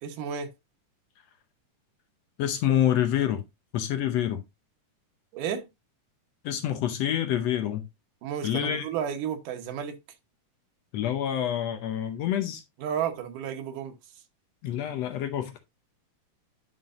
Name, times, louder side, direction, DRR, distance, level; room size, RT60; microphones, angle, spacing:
voice 1, 0.0-0.5 5.3-5.7 8.2-10.0 12.8-13.9, right 8 dB, 80° right, 2.6 m, -32 dB
voice 2, 2.4-3.4 3.7-4.4 6.4-7.8 8.4-8.8 10.9-12.6 14.6-15.6, left 10 dB, 75° left, 1.6 m, -27 dB
9.6 x 5.6 x 2.5 m
omnidirectional pair, 3.7 m